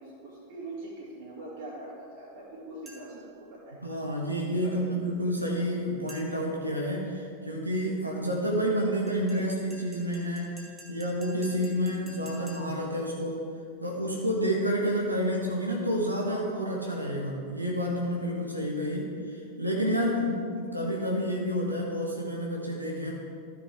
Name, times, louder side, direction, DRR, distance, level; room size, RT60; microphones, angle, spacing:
voice 1, 0.0-3.8 4.6-4.9, right 2 dB, 55° right, -10 dB, 2.7 m, -42 dB
sound 1, 2.9-3.3 6.1-6.6 9.1-12.9, right 1 dB, 10° right, 1.7 m, -51 dB
voice 2, 3.8-10.6 10.9-13.4 13.8-23.1, equal, 85° right, -2 dB, 1.3 m, -29 dB
13.5 x 6.6 x 3.6 m, 2.3 s
figure-of-eight pair, 90°, 0 cm